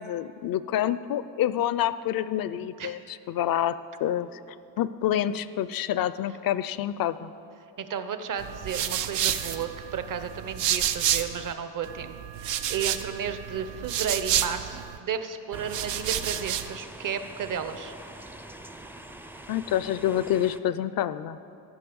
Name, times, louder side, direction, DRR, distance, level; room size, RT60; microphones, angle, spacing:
voice 1, 0.0-3.8 4.0-4.4 4.8-7.3 19.5-21.4, left 11 dB, 55° left, 15 dB, 0.5 m, -27 dB
voice 2, 7.8-17.9, right 7 dB, 45° right, 9 dB, 0.8 m, -33 dB
sound 1, 8.4-11.5 11.8-15.0 15.5-16.8, right 10 dB, 75° right, 0.7 m, -30 dB
sound 2, 15.5-20.6, right 1 dB, 5° right, 0.4 m, -44 dB
13.0 x 5.5 x 7.0 m, 2.6 s
cardioid pair, 80°, 43 cm